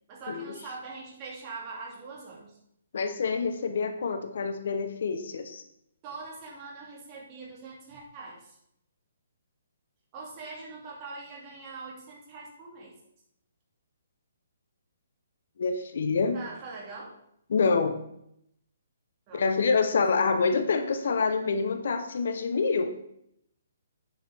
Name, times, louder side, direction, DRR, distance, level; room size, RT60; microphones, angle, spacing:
voice 1, 0.1-2.6 6.0-8.6 10.1-12.9 16.3-17.1 19.3-20.0, right 3 dB, 30° right, -3 dB, 2.8 m, -43 dB
voice 2, 2.9-5.6 15.6-16.4 17.5-18.0 19.3-23.0, left 4 dB, 65° left, 7 dB, 0.9 m, -26 dB
9.0 x 7.0 x 3.5 m, 0.75 s
figure-of-eight pair, 135°, 0 cm